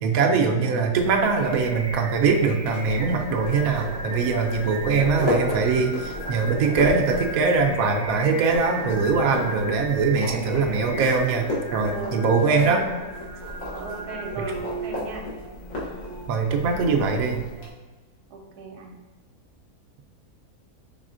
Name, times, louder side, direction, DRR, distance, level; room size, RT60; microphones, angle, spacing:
voice 1, 0.0-12.8 16.3-17.5, right 4 dB, 70° right, 2 dB, 1.0 m, -22 dB
Singing, 0.6-16.9, right 1 dB, 10° right, 0.3 m, -37 dB
sound 1, 0.9-17.7, left 1 dB, 60° left, 1.5 m, -35 dB
voice 2, 11.9-12.8 13.7-15.3 18.3-18.9, right 3 dB, 85° right, 2 dB, 1.2 m, -36 dB
4.8 x 3.6 x 2.5 m, 1.3 s
omnidirectional pair, 1.6 m